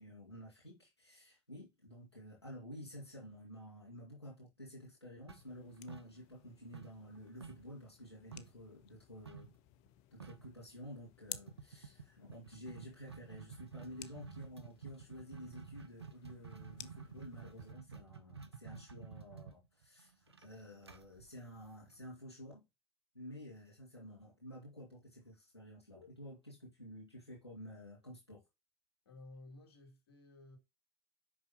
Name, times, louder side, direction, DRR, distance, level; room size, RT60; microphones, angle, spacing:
voice 1, 0.0-9.5 10.1-22.6 23.1-28.4, equal, 90° left, 2.6 m, -51 dB
sound 1, 5.3-17.7, left 15 dB, 55° left, 0.7 m, -56 dB
sound 2, 5.3-6.5 6.7-8.6 9.3-9.6 9.9-10.0 10.2-10.6 11.3-22.1, right 6 dB, 85° right, 0.7 m, -51 dB
voice 2, 29.0-30.6, left 2 dB, 75° left, 3.0 m, -55 dB
6.2 x 5.6 x 3.0 m
figure-of-eight pair, 65°, 13 cm